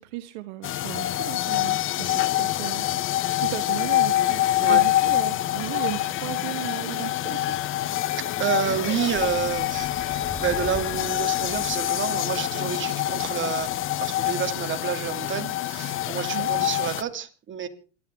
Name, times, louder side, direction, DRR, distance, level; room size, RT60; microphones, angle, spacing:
voice 1, 0.0-4.4 4.7-7.6 16.3-16.5, right 16 dB, 65° right, 11 dB, 1.3 m, -36 dB
sound 1, 0.6-17.0, left 14 dB, 35° left, 0.9 m, -26 dB
sound 2, 3.8-12.1, left 20 dB, 70° left, 1.0 m, -42 dB
voice 2, 8.1-13.7 14.0-17.7, right 8 dB, 35° right, 8 dB, 2.3 m, -29 dB
sound 3, 9.1-13.9, left 1 dB, 5° left, 1.5 m, -43 dB
28.0 x 11.5 x 3.5 m, 0.38 s
hypercardioid pair, 95°, 36 cm